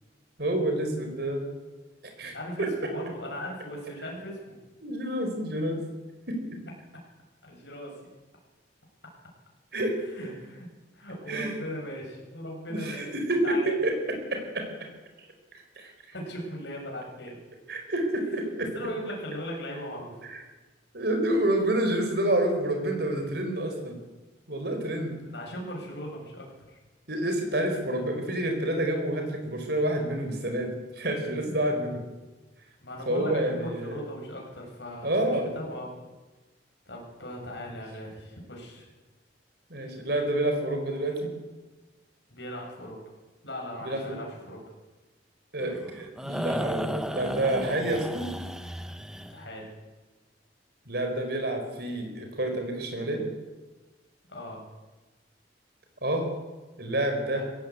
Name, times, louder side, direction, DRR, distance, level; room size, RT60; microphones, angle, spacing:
voice 1, 0.4-1.5 2.2-2.3 2.6-2.7 4.8-5.8 6.3-6.4 9.7-10.0 11.3-11.5 12.7-13.9 14.3-14.7 15.2-15.3 15.8-15.9 17.7-18.7 20.3-20.4 20.9-24.0 24.5-25.2 27.1-32.0 33.1-34.0 35.0-35.5 37.6-37.7 39.7-41.3 43.8-44.2 45.5-48.3 50.9-53.3 56.0-56.3 56.8-57.4, right 1 dB, 60° right, 4 dB, 4.7 m, -28 dB
voice 2, 2.2-4.6 7.4-8.0 10.1-13.1 13.4-13.8 16.1-17.4 18.7-20.2 25.2-26.8 32.8-35.9 36.8-38.9 42.3-43.0 43.4-44.6 49.3-49.7 54.3-54.6 57.3-57.4, equal, 70° left, -1 dB, 7.0 m, -38 dB
sound 1, 45.6-49.5, equal, 5° right, 0.9 m, -34 dB
20.5 x 16.5 x 8.5 m, 1.2 s
head